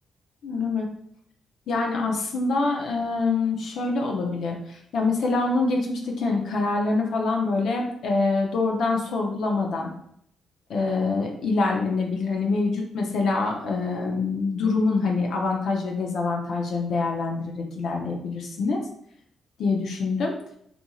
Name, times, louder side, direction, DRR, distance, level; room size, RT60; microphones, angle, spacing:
voice 1, 0.4-0.9 1.7-9.9 10.7-18.8 19.6-20.3, left 3 dB, 70° left, 0 dB, 0.4 m, -25 dB
2.9 x 2.5 x 2.2 m, 0.71 s
cardioid pair, 100°, 0 cm